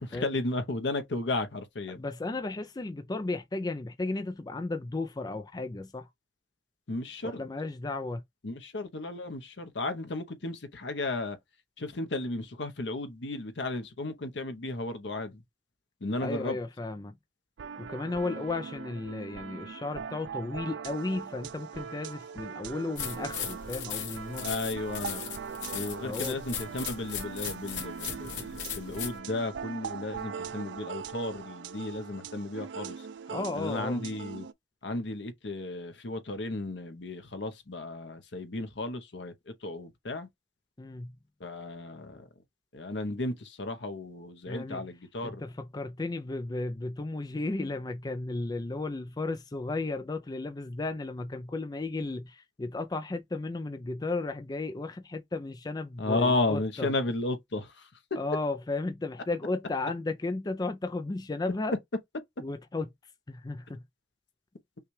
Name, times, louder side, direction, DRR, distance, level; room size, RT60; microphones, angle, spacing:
voice 1, 0.0-2.0 6.9-7.4 8.4-11.4 11.8-15.4 16.0-16.6 24.4-25.2 25.7-33.1 33.5-34.5 34.8-40.3 41.4-42.3 42.7-45.4 56.0-57.9, left 2 dB, 75° left, 0.9 m, -34 dB
voice 2, 2.0-6.1 7.2-8.2 16.2-17.1 17.8-24.5 26.0-26.4 33.3-34.1 40.8-41.1 44.5-44.8 45.2-56.9 58.2-61.8 62.4-62.9 63.3-63.8, left 2 dB, 20° left, 0.4 m, -34 dB
sound 1, 17.6-34.5, right 6 dB, 75° right, 0.4 m, -41 dB
sound 2, 23.0-29.2, left 8 dB, 90° left, 1.5 m, -38 dB
5.6 x 2.3 x 3.2 m
head